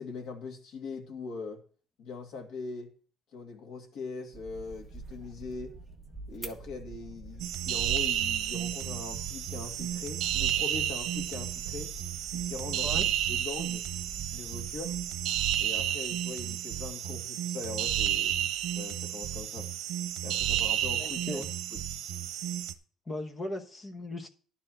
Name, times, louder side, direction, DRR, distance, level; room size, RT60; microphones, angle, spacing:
voice 1, 0.0-1.6 2.0-2.9 3.3-5.7 6.3-11.9 12.3-13.0 13.3-13.8 14.3-15.0 15.6-18.4 18.8-19.7 20.2-21.4 21.7-21.8, left 4 dB, 70° left, 2.4 m, -41 dB
sound 1, 4.3-15.2, right 3 dB, 5° right, 1.0 m, -47 dB
sound 2, 7.4-22.7, right 11 dB, 80° right, 0.9 m, -31 dB
voice 2, 21.0-21.5 23.1-24.3, left 1 dB, 20° left, 1.1 m, -37 dB
11.5 x 4.7 x 7.6 m
cardioid pair, 180°, 0 cm